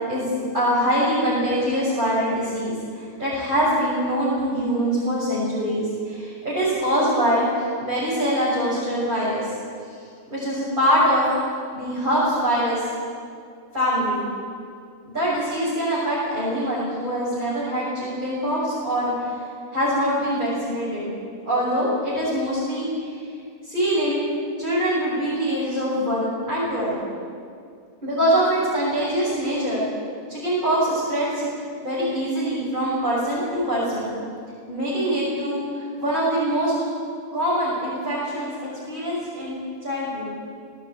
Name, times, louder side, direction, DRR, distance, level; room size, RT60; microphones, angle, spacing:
voice 1, 0.1-9.5 9.9-10.0 10.3-11.3 11.7-12.8 13.7-14.2 15.1-19.3 19.7-21.0 21.4-23.2 23.6-24.2 24.6-26.9 28.0-29.8 30.3-31.5 31.8-34.1 34.7-36.7 37.3-40.3, equal, 35° right, -8 dB, 6.7 m, -24 dB
18.5 x 18.0 x 8.9 m, 2.3 s
omnidirectional pair, 1.4 m